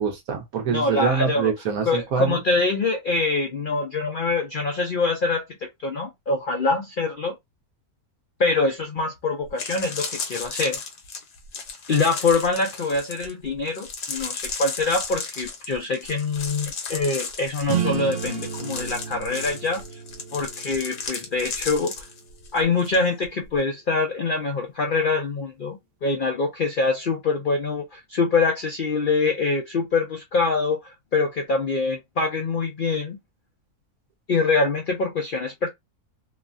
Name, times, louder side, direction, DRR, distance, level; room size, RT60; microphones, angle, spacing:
voice 1, 0.0-2.4, right 6 dB, 70° right, 1.2 m, -25 dB
voice 2, 0.7-1.5 1.8-7.3 8.4-10.8 11.9-20.0 20.3-22.0 22.5-33.2 34.3-35.7, left 3 dB, 85° left, 0.4 m, -24 dB
sound 1, 9.0-9.1 9.4-23.0 23.2-23.6, left 5 dB, 60° left, 1.1 m, -35 dB
sound 2, 17.6-22.7, right 8 dB, 85° right, 0.5 m, -33 dB
3.1 x 2.1 x 2.4 m
omnidirectional pair, 1.6 m